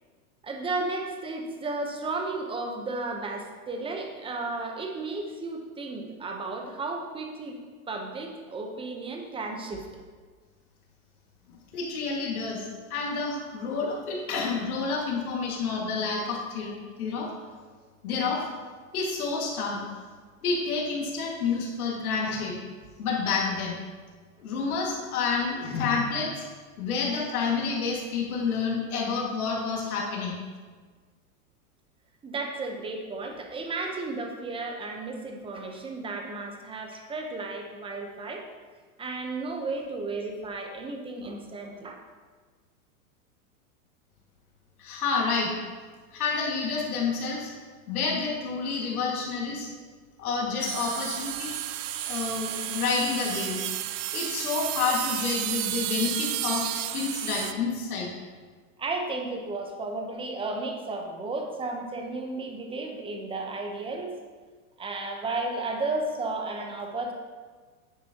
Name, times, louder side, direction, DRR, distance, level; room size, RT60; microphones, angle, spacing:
voice 1, 0.4-7.6 7.9-9.9 32.2-38.5 39.0-42.0 58.8-64.1 64.8-67.1, right 3 dB, 10° right, 2 dB, 0.9 m, -33 dB
voice 2, 11.7-12.6 12.9-17.3 18.0-18.4 18.9-19.8 20.4-22.5 23.0-23.8 24.4-26.4 26.8-30.4 44.8-45.5 46.1-47.5 47.9-49.7 50.2-51.5 52.0-53.6 54.1-58.1, left 4 dB, 80° left, -3 dB, 2.2 m, -29 dB
sound 1, 50.6-57.5, right 13 dB, 55° right, 0.6 m, -32 dB
9.5 x 7.5 x 2.9 m, 1.5 s
hypercardioid pair, 130°, 44 cm